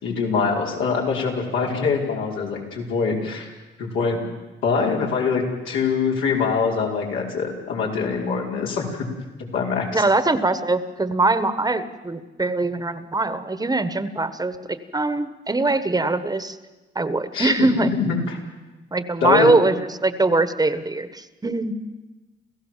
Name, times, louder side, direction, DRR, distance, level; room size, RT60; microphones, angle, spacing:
voice 1, 0.0-3.5 3.8-4.2 4.6-9.0 9.4-10.0 17.3-17.7 17.9-18.4 19.2-19.5, left 5 dB, 80° left, -2 dB, 5.1 m, -24 dB
voice 2, 9.9-16.6 16.9-17.9 18.9-21.7, right 2 dB, 20° right, 12 dB, 1.3 m, -22 dB
29.0 x 15.5 x 7.4 m, 1.2 s
cardioid pair, 90°, 20 cm